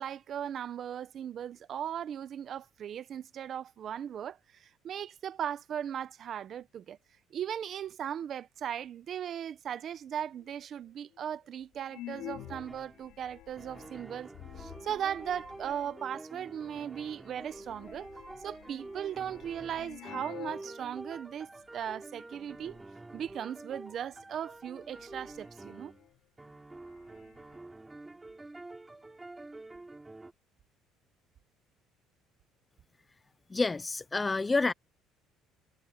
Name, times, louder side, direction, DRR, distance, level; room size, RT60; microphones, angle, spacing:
voice 1, 0.0-7.0 7.3-14.3 14.6-18.1 18.4-22.8 23.1-25.9, right 9 dB, 40° right, 0.8 m, -38 dB
sound 1, 10.4-10.5 11.1-11.2 11.8-16.1 16.9-17.0 17.2-20.7 21.0-21.1 21.8-22.1 22.4-22.9 24.1-24.2 24.7-26.2 26.5-26.6 26.8-27.6, left 15 dB, 65° left, 4.3 m, -49 dB
sound 2, 12.4-13.1 13.6-26.1 26.4-30.3, right 2 dB, 10° right, 7.3 m, -48 dB
voice 2, 33.5-34.7, left 3 dB, 15° left, 0.4 m, -28 dB
cardioid pair, 160°, 0 cm